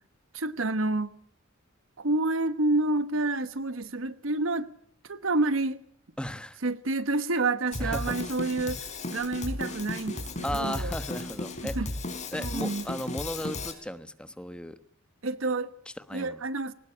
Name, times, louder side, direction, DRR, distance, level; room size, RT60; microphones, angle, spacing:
voice 1, 0.3-1.1 2.0-4.7 5.0-5.8 6.6-10.9 11.6-11.9 12.4-12.8 15.2-15.7 16.1-16.7, right 2 dB, 70° right, 1.2 m, -29 dB
voice 2, 6.2-6.6 7.8-8.2 10.4-11.8 12.3-14.8 16.0-16.4, left 1 dB, 5° left, 1.1 m, -35 dB
Drum kit, 7.7-13.7, left 2 dB, 35° left, 4.2 m, -35 dB
21.0 x 19.5 x 8.6 m
head